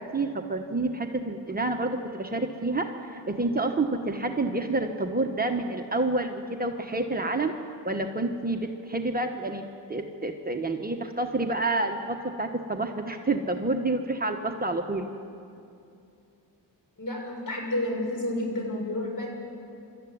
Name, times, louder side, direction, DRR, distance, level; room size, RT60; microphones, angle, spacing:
voice 1, 0.0-7.5 7.8-9.6 9.9-15.1, right 2 dB, 20° right, 3 dB, 1.2 m, -28 dB
voice 2, 17.0-19.3, left 1 dB, 50° left, 1 dB, 6.2 m, -30 dB
26.0 x 13.5 x 9.4 m, 2.6 s
cardioid pair, 105°, 42 cm